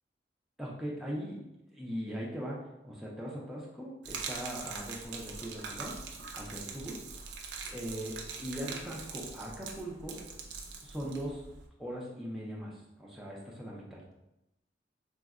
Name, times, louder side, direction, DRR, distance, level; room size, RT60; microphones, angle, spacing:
voice 1, 0.6-1.4 1.7-5.9 6.3-7.0 7.7-10.2 10.8-11.4 11.8-14.0, equal, ahead, -5 dB, 0.4 m, -40 dB
Gurgling / Liquid, 4.0-11.7, right 5 dB, 80° right, 0.4 m, -43 dB
3.4 x 2.0 x 2.4 m, 0.91 s
head